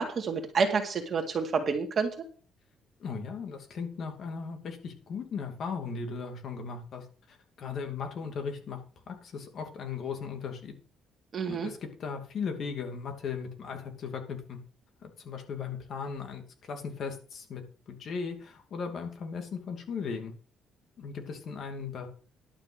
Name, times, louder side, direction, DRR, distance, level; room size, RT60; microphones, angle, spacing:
voice 1, 0.0-2.1 11.3-11.7, right 5 dB, 40° right, 4 dB, 2.1 m, -28 dB
voice 2, 3.0-8.8 9.1-10.7 11.5-14.6 15.0-20.3 21.0-22.1, left 5 dB, 55° left, 4 dB, 2.7 m, -37 dB
11.5 x 6.2 x 6.4 m, 0.40 s
cardioid pair, 125°, 0 cm